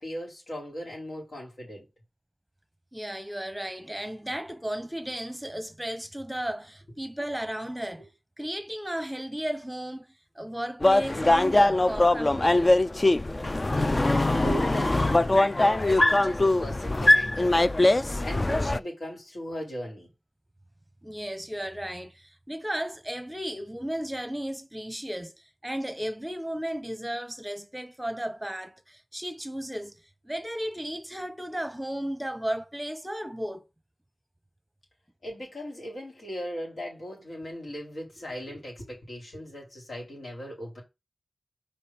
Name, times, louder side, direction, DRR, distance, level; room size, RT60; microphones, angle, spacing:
voice 1, 0.0-1.9 13.7-17.7 18.2-20.1 35.2-40.8, equal, 80° left, 4.3 m, -38 dB
voice 2, 2.9-8.1 8.4-10.1 10.3-12.7 21.0-33.7, equal, 10° right, 0.9 m, -34 dB
sound 1, 10.8-18.8, left 2 dB, 35° left, 0.4 m, -22 dB
5.2 x 5.0 x 5.9 m
wide cardioid pair, 85°, 0 cm